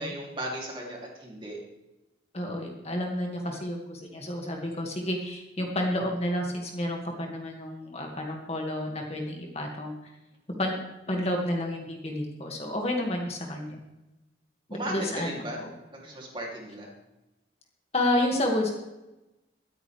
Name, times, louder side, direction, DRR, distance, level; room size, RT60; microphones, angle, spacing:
voice 1, 0.0-1.6 14.7-15.6 15.9-16.9, right 1 dB, 25° right, -2 dB, 2.9 m, -36 dB
voice 2, 2.3-9.9 10.6-10.8 11.1-13.8 14.7-15.7 17.9-18.7, left 1 dB, 35° left, 1 dB, 2.0 m, -30 dB
23.5 x 9.1 x 3.4 m, 0.99 s
head